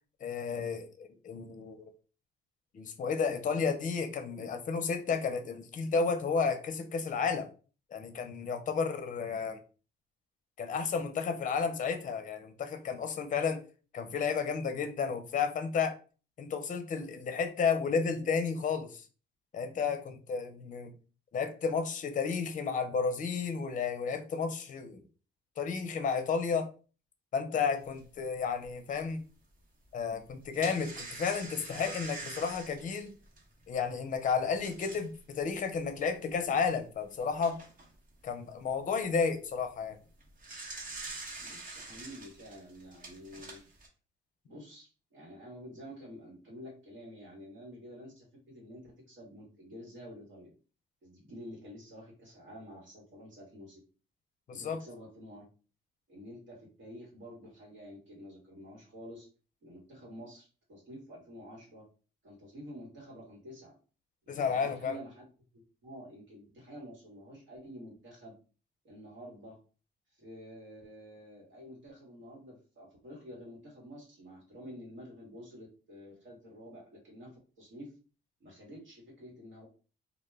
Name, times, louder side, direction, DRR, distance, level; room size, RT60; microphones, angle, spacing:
voice 1, 0.2-1.9 2.7-7.5 7.9-9.6 10.6-13.6 13.9-16.0 16.4-19.1 19.5-20.9 21.3-25.0 25.6-26.7 27.3-29.2 29.9-33.1 33.7-37.6 38.2-40.0 54.5-54.8 64.3-65.0, left 5 dB, 40° left, 0.5 m, -32 dB
sound 1, 28.0-28.1 28.6-28.7 30.2-35.2 35.8-35.9 36.3-36.4 37.0-37.9 40.1-43.9, right 3 dB, 45° right, 0.9 m, -45 dB
voice 2, 41.4-43.7 44.4-50.5 51.0-53.8 54.5-55.4 56.1-59.3 59.6-61.8 62.2-63.7 64.3-65.2 65.5-68.3 68.8-69.6 70.2-77.9 78.4-79.7, equal, 70° right, 1.2 m, -49 dB
2.2 x 2.1 x 3.2 m
cardioid pair, 90°, 20 cm